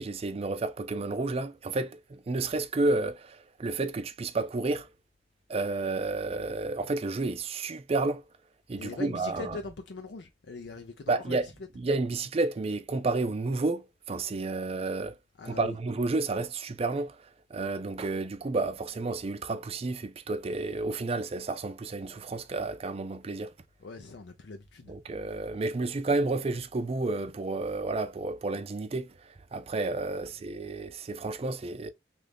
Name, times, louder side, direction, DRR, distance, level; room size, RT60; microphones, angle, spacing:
voice 1, 0.0-4.9 5.5-8.3 8.7-9.6 11.1-11.5 11.8-15.2 15.5-23.5 24.9-31.9, right 3 dB, 35° right, 0.4 m, -31 dB
voice 2, 8.8-11.5 15.4-15.8 23.8-24.9, left 3 dB, 70° left, 0.5 m, -41 dB
3.1 x 2.5 x 3.3 m
head